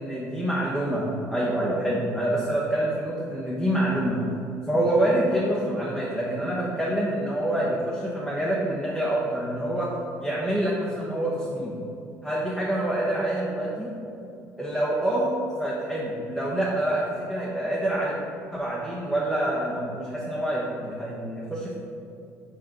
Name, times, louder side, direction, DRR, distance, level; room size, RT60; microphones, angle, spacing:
voice 1, 0.0-4.3 4.7-9.9 10.2-11.8 12.2-13.9 14.6-15.3 15.6-18.2 18.5-21.7, right 1 dB, ahead, -6 dB, 0.9 m, -26 dB
6.0 x 4.2 x 5.0 m, 2.7 s
cardioid pair, 130°, 6 cm